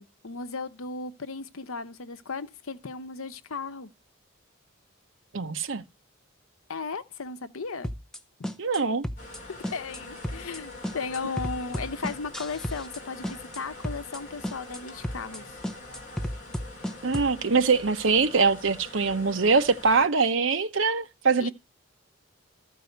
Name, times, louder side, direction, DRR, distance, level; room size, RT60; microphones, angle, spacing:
voice 1, 0.0-3.9 6.7-7.9 9.7-15.6 21.4-21.5, left 4 dB, 85° left, 0.8 m, -36 dB
voice 2, 5.3-5.8 8.6-9.1 17.0-21.5, right 4 dB, 65° right, 0.8 m, -23 dB
sound 1, 7.8-8.2 8.4-8.8 9.0-9.4 9.6-10.0 10.2-10.6 10.8-13.0 13.2-13.6 13.8-14.2 14.4-14.8 15.0-15.4 15.6-17.3, equal, 5° left, 0.6 m, -33 dB
sound 2, 9.2-20.1, left 2 dB, 35° left, 3.3 m, -44 dB
14.0 x 4.8 x 7.9 m
head